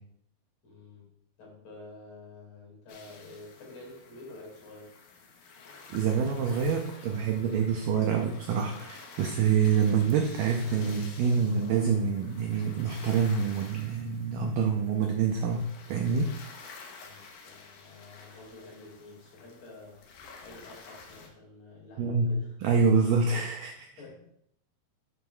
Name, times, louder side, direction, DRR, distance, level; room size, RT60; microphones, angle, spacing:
voice 1, 0.6-1.1 1.4-5.0 17.0-20.0 20.4-22.5 24.0-24.3, left 2 dB, 50° left, -3 dB, 3.0 m, -49 dB
sound 1, 2.9-21.3, left 4 dB, 75° left, 1.8 m, -50 dB
voice 2, 5.9-16.3 22.0-23.9, right 6 dB, 85° right, 2 dB, 1.9 m, -26 dB
11.0 x 6.1 x 2.3 m, 0.70 s
omnidirectional pair, 4.7 m